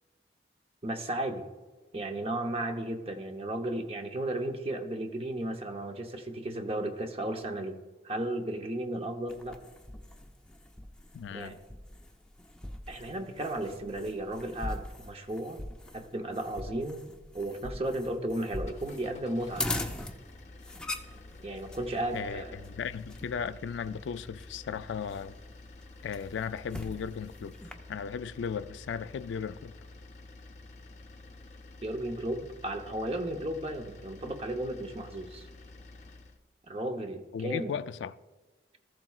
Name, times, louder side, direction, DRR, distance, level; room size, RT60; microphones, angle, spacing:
voice 1, 0.8-1.4 1.9-7.8 8.0-9.6 11.3-11.6 12.9-15.6 15.9-19.7 21.4-22.6 31.8-35.5 36.7-37.8, right 1 dB, 30° right, 0.8 m, -34 dB
sound 1, 9.3-27.7, left 1 dB, 5° left, 0.5 m, -42 dB
voice 2, 11.1-11.6 22.1-25.3 26.0-27.5 27.9-29.7 37.3-38.2, left 6 dB, 80° left, 0.3 m, -36 dB
sound 2, 18.5-36.4, left 2 dB, 40° left, 0.7 m, -50 dB
14.5 x 7.6 x 2.4 m
head